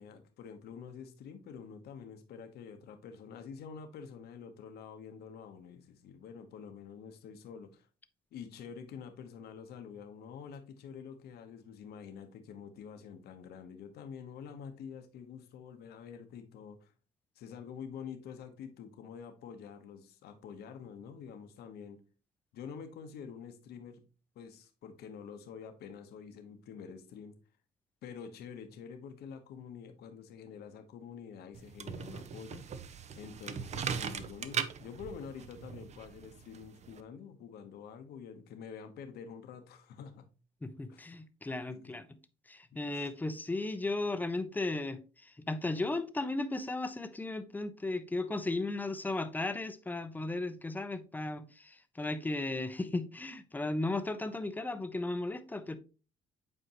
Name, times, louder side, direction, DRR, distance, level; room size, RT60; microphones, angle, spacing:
voice 1, 0.0-7.9 8.3-16.9 17.4-22.0 22.5-24.0 24.3-27.3 28.0-32.6 33.1-40.3 40.9-41.2 41.7-42.0 42.7-43.1, left 7 dB, 70° left, 1.1 m, -47 dB
sound 1, 31.5-37.0, right 7 dB, 40° right, 0.6 m, -39 dB
voice 2, 40.6-42.1 42.5-55.8, left 2 dB, 10° left, 0.6 m, -35 dB
7.8 x 4.5 x 3.0 m
cardioid pair, 110°, 17 cm